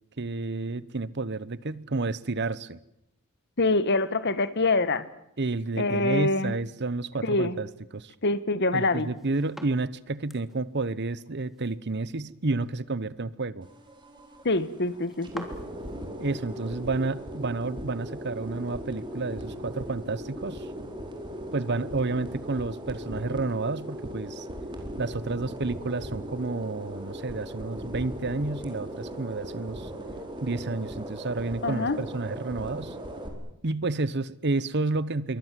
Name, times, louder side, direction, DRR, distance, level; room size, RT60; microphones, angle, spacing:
voice 1, 0.2-2.8 5.4-7.7 7.9-8.1 8.7-13.7 16.2-20.7 21.5-24.5 25.0-29.9 30.4-32.9 33.6-35.4, right 3 dB, 55° right, 1.0 m, -30 dB
voice 2, 3.6-5.0 5.8-6.5 7.2-7.6 8.2-9.1 14.4-15.4 31.6-32.0, left 2 dB, 50° left, 1.5 m, -25 dB
sound 1, 9.0-16.0, equal, ahead, 3.1 m, -49 dB
sound 2, 13.6-33.3, equal, 20° right, 4.5 m, -38 dB
27.0 x 23.5 x 7.6 m
head